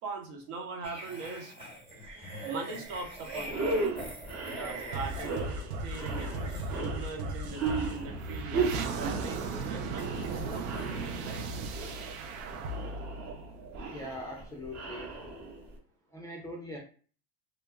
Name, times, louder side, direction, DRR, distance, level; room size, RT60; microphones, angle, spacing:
voice 1, 0.0-1.5 2.4-4.0 4.4-5.4 5.8-6.3 6.8-11.5 11.8-12.0, right 3 dB, 65° right, 1 dB, 1.0 m, -41 dB
sound 1, 0.8-11.0 11.2-11.5, right 2 dB, 15° right, 1.1 m, -44 dB
sound 2, 2.9-3.1 3.4-15.8, right 3 dB, 40° right, 0.9 m, -36 dB
sound 3, 4.9-14.3, right 3 dB, 90° right, 0.5 m, -37 dB
voice 2, 13.9-15.4 16.1-16.8, left 1 dB, 10° left, -1 dB, 0.4 m, -42 dB
2.1 x 2.0 x 3.4 m, 0.40 s
supercardioid pair, 110°, 42 cm